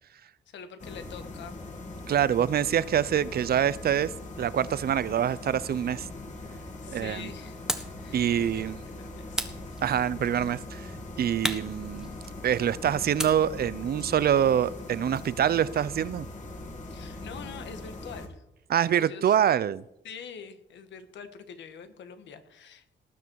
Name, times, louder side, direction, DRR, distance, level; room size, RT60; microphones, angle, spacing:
voice 1, 0.5-1.6 6.8-7.6 8.0-9.5 16.9-18.4 18.9-19.4 20.0-22.9, left 6 dB, 85° left, 9 dB, 1.6 m, -45 dB
sound 1, 0.8-18.3, left 2 dB, 40° left, 2.6 m, -41 dB
voice 2, 2.1-4.1 4.4-6.1 6.9-7.3 8.1-8.8 9.8-10.9 11.2-12.1 12.4-16.3 18.7-19.8, right 9 dB, 60° right, 18 dB, 0.6 m, -25 dB
sound 2, 7.7-8.0 9.3-10.3 11.4-12.5 13.2-15.4, equal, 5° right, 1.5 m, -35 dB
19.0 x 9.4 x 4.7 m, 0.85 s
cardioid pair, 100°, 18 cm